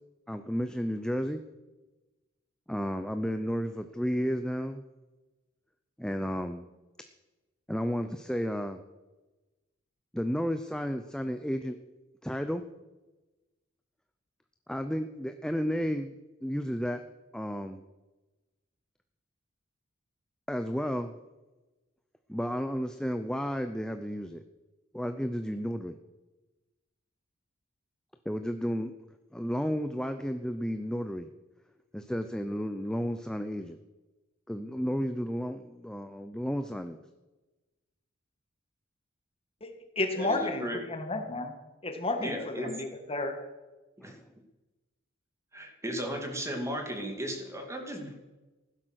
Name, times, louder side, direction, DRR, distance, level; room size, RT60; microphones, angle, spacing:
voice 1, 0.3-1.4 2.7-4.8 6.0-6.6 7.7-8.8 10.1-11.8 12.2-12.6 14.7-16.1 16.4-17.0 17.3-17.8 20.5-21.1 22.3-24.4 24.9-26.0 28.3-28.9 29.3-31.3 31.9-33.8 34.5-37.0 44.0-44.2, equal, 5° left, 8 dB, 0.6 m, -32 dB
voice 2, 39.6-41.5 41.8-43.4, left 2 dB, 30° left, 5 dB, 1.9 m, -32 dB
voice 3, 40.1-40.8 42.2-42.7 44.0-44.1 45.5-48.1, equal, 15° right, 3 dB, 2.6 m, -35 dB
15.5 x 12.0 x 6.4 m, 1.1 s
head